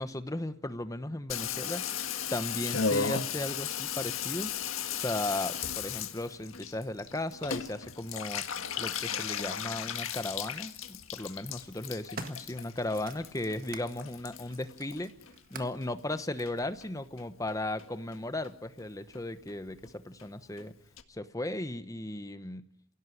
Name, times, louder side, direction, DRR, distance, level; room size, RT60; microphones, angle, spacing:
voice 1, 0.0-4.5 4.9-8.5 8.8-15.1 15.5-20.7 21.1-22.6, left 1 dB, 15° left, 11 dB, 1.0 m, -36 dB
Water tap faucet / Bathtub (filling or washing), 1.3-15.8 16.1-16.9 17.2-17.3 17.5-17.6 17.8-18.2 18.4-18.5 18.8-18.9 19.1-19.2 19.5-19.6 19.8-19.9 20.2-20.3 20.6-20.7 21.0-21.1, left 7 dB, 70° left, 1.7 m, -36 dB
sound 1, 11.0-11.1 11.6-13.9 14.4-15.9 16.7-16.8, right 4 dB, 40° right, 1.7 m, -47 dB
28.0 x 17.0 x 9.8 m, 0.79 s
head